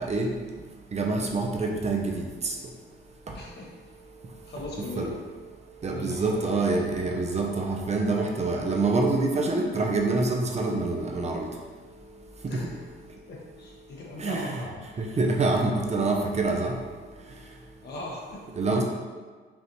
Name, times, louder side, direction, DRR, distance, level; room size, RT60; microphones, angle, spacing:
voice 1, 0.9-2.2 5.0-5.1 5.8-11.5 12.5-12.6 14.2-14.5 15.2-16.7 18.6-18.8, right 3 dB, 35° right, 1 dB, 0.6 m, -26 dB
voice 2, 3.3-3.9 4.5-5.2 5.9-6.5 12.5-12.8 13.3-14.8 17.8-18.5, left 2 dB, 60° left, -3 dB, 1.2 m, -39 dB
5.4 x 2.5 x 3.0 m, 1.5 s
cardioid pair, 90°, 20 cm